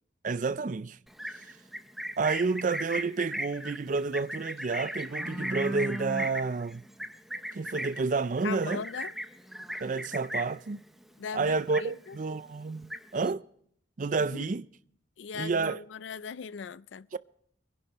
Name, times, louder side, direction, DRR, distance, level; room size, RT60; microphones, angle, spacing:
voice 1, 0.2-1.0 2.2-6.8 7.5-8.8 9.8-10.8 11.3-13.4 14.0-14.7 15.3-15.8 17.1-17.2, right 4 dB, 45° right, 0.4 m, -30 dB
Livestock farm animals working animals, 1.1-10.7 11.0-11.3 11.6-12.3 12.6-13.3, equal, ahead, 0.6 m, -37 dB
voice 2, 8.4-9.1 11.2-12.2 14.2-14.5 15.2-17.1, left 6 dB, 75° left, 0.4 m, -39 dB
24.5 x 11.0 x 3.0 m
head